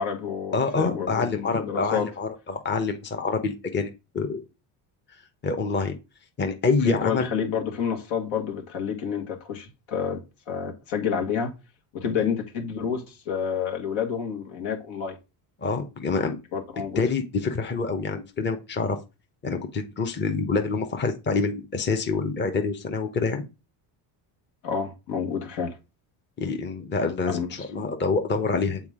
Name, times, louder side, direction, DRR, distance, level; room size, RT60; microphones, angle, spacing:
voice 1, 0.0-2.1 6.9-11.5 11.9-15.2 16.5-17.0 24.6-25.7 27.3-27.5, left 7 dB, 75° left, 1.8 m, -29 dB
voice 2, 0.5-4.4 5.4-6.0 6.4-7.3 12.1-12.2 15.6-16.4 17.0-19.0 19.4-23.5 26.4-28.8, left 4 dB, 25° left, 0.9 m, -26 dB
7.1 x 4.1 x 3.6 m
cardioid pair, 105°, 48 cm